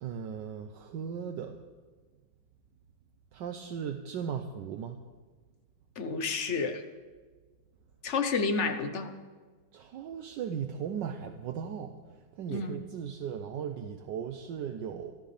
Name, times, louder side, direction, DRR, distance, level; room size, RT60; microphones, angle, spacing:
voice 1, 0.0-1.6 3.3-5.0 9.7-11.9 12.4-15.1, right 7 dB, 70° right, 6 dB, 1.3 m, -37 dB
voice 2, 6.0-6.8 8.0-9.1 12.5-12.8, left 4 dB, 50° left, 7 dB, 0.9 m, -30 dB
27.5 x 12.5 x 3.3 m, 1.4 s
omnidirectional pair, 2.1 m